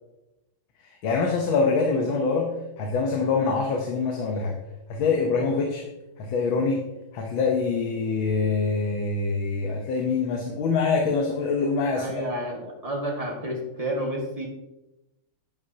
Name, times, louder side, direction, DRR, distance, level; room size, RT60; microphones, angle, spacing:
voice 1, 1.0-4.6 4.9-5.9 6.2-6.8 7.1-12.2, left 4 dB, 70° left, 1 dB, 1.7 m, -25 dB
voice 2, 11.9-14.4, right 1 dB, 20° right, -1 dB, 1.7 m, -30 dB
10.5 x 9.3 x 2.8 m, 0.98 s
omnidirectional pair, 2.3 m